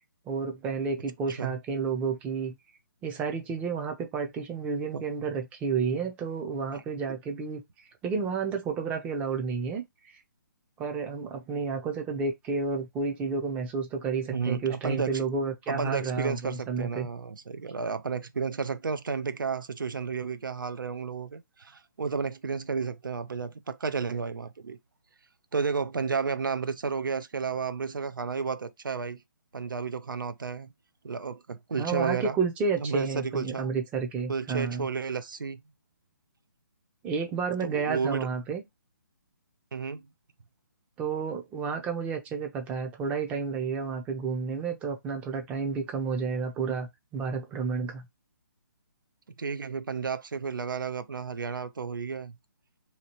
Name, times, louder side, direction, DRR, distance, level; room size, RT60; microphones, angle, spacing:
voice 1, 0.3-2.5 3.0-7.6 8.0-10.2 10.8-17.1 31.8-34.9 37.0-38.6 41.0-48.0, right 5 dB, 15° right, 0.5 m, -31 dB
voice 2, 14.3-15.2 15.7-24.8 25.5-29.2 29.5-30.7 31.0-32.4 32.8-33.7 34.3-35.6 37.6-38.3 39.7-40.1 49.4-52.4, right 5 dB, 85° right, 0.5 m, -32 dB
2.8 x 2.8 x 2.8 m
hypercardioid pair, 150°, 11 cm